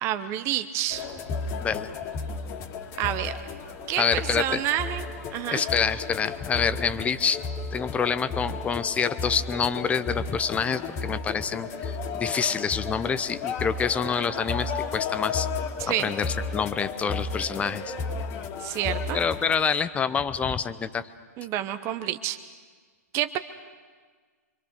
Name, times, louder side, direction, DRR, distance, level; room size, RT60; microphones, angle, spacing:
voice 1, 0.0-1.0 3.0-3.3 3.9-5.0 5.3-5.6 15.8-16.1 18.6-19.2 21.4-22.4 23.1-23.4, right 12 dB, 30° right, 10 dB, 0.9 m, -28 dB
sound 1, 0.9-19.6, left 4 dB, 30° left, 2.1 m, -33 dB
voice 2, 1.6-1.9 4.0-4.6 5.5-7.4 7.7-15.5 16.0-17.9 19.1-21.1, left 6 dB, 15° left, 13 dB, 0.7 m, -27 dB
26.5 x 25.0 x 6.8 m, 1.5 s
figure-of-eight pair, 120°, 9 cm